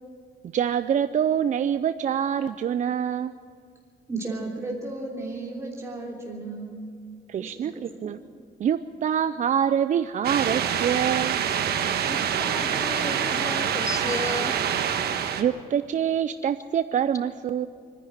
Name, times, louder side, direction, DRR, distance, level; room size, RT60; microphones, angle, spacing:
voice 1, 0.5-3.3 7.3-8.2 8.6-11.4 15.4-17.7, right 8 dB, 50° right, 11 dB, 0.5 m, -25 dB
voice 2, 4.1-6.8 7.4-7.8, right 2 dB, 15° right, -2 dB, 3.2 m, -34 dB
sound 1, 10.2-15.4, right 8 dB, 75° right, 1.3 m, -26 dB
voice 3, 12.1-14.6, left 3 dB, 20° left, 10 dB, 0.8 m, -34 dB
24.5 x 10.5 x 9.9 m, 2.2 s
cardioid pair, 125°, 17 cm